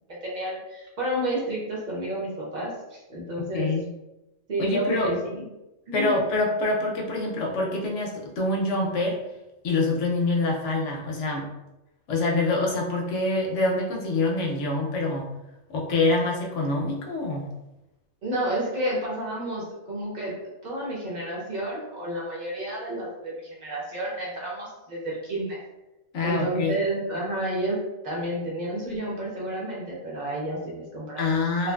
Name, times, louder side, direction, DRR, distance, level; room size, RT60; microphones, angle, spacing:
voice 1, 0.2-3.7 4.5-5.4 5.9-6.2 18.2-20.3 20.6-25.6 26.2-27.8 28.0-31.4 31.6-31.7, right 1 dB, 40° right, -4 dB, 0.7 m, -30 dB
voice 2, 3.4-3.8 4.6-5.1 5.9-9.2 9.6-11.5 12.1-15.3 15.7-17.5 26.1-26.7 31.2-31.7, left 2 dB, 70° left, 0 dB, 0.8 m, -25 dB
2.9 x 2.4 x 2.2 m, 0.97 s
omnidirectional pair, 1.4 m